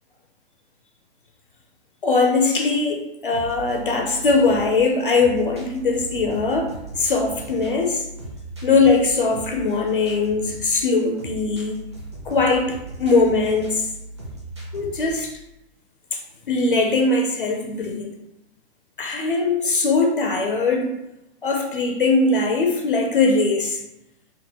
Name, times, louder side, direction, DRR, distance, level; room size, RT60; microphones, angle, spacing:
voice 1, 2.0-8.0 8.6-11.8 12.3-13.9 14.7-15.4 16.1-16.2 16.5-18.1 19.0-20.9 21.4-23.8, left 3 dB, 50° left, 2 dB, 0.5 m, -21 dB
sound 1, 3.3-15.3, right 2 dB, 25° right, 0.5 m, -38 dB
3.6 x 2.2 x 4.4 m, 0.90 s
hypercardioid pair, 180°, 33 cm